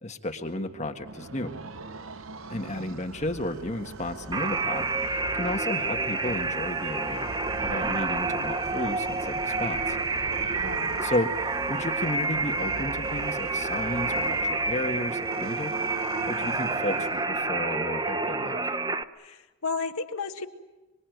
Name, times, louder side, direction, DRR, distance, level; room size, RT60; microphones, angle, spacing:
voice 1, 0.0-1.5 2.5-4.9 5.3-7.3 7.6-10.0 11.0-15.7 16.2-18.7, left 1 dB, 30° left, 5 dB, 1.6 m, -33 dB
sound 1, 0.7-17.6, right 3 dB, 60° right, 1.0 m, -42 dB
voice 2, 2.5-3.0 10.6-11.0 19.2-20.5, left 4 dB, 75° left, 5 dB, 1.8 m, -34 dB
sound 2, 4.3-19.0, right 3 dB, 20° right, 1.0 m, -29 dB
25.5 x 25.0 x 9.3 m, 1.1 s
head